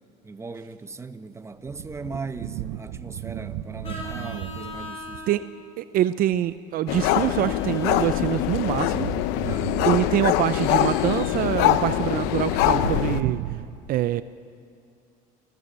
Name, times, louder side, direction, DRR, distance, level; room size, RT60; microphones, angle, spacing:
voice 1, 0.2-5.4 9.4-9.8, right 4 dB, 15° right, 1.0 m, -38 dB
sound 1, 1.5-5.3 6.3-6.6 7.9-10.5 11.8-13.7, right 12 dB, 80° right, 0.9 m, -35 dB
Vehicle horn car horn honking, 3.8-5.4 6.9-8.4 10.5-11.7, left 1 dB, 35° left, 4.5 m, -40 dB
voice 2, 5.8-9.1 9.8-13.4 13.9-14.2, right 12 dB, 55° right, 0.6 m, -25 dB
sound 2, 6.9-13.2, left 13 dB, 80° left, 0.8 m, -23 dB
27.5 x 14.5 x 6.9 m
supercardioid pair, 105°, 17 cm